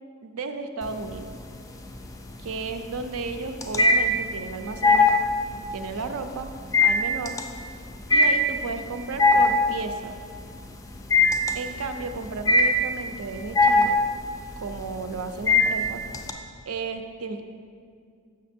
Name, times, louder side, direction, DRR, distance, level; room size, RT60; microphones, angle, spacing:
voice 1, 0.2-1.3 2.4-5.2 5.7-6.5 6.8-7.4 8.1-10.2 11.5-14.0 14.6-16.0 16.7-17.4, right 4 dB, 75° right, 8 dB, 0.5 m, -33 dB
sound 1, 0.8-1.5 1.8-16.3, left 2 dB, 15° left, 0.3 m, -21 dB
6.5 x 6.1 x 4.3 m, 2.2 s
head